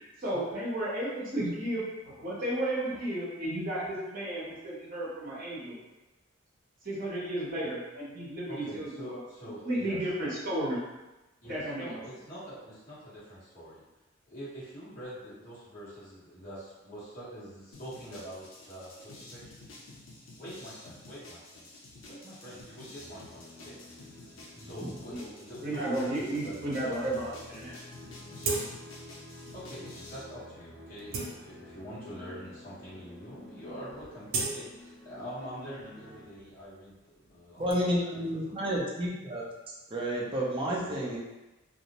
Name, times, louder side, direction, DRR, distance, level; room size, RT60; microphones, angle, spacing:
voice 1, 0.0-1.8 2.2-5.8 6.8-9.2 9.6-10.8 11.4-12.0 25.1-25.2 25.6-27.7, right 1 dB, 45° right, -7 dB, 0.9 m, -33 dB
voice 2, 8.5-10.0 11.4-13.8 14.2-18.9 19.3-19.4 20.4-21.6 22.0-23.8 24.5-27.2 29.5-37.8 38.1-38.5 40.6-41.0, equal, 45° left, -12 dB, 1.2 m, -45 dB
sound 1, 17.7-30.2, left 2 dB, 75° left, 0.5 m, -51 dB
sound 2, 22.9-36.3, left 1 dB, 25° left, 0.8 m, -51 dB
sound 3, 28.4-29.1 29.5-29.6 30.3-30.4 30.8-32.0 32.6-32.7 33.0-33.4 33.6-35.5 35.8-37.7, right 3 dB, 85° right, 0.4 m, -37 dB
voice 3, 37.6-39.4 39.9-41.2, equal, 25° right, -4 dB, 0.5 m, -30 dB
2.5 x 2.0 x 2.8 m, 1.1 s
head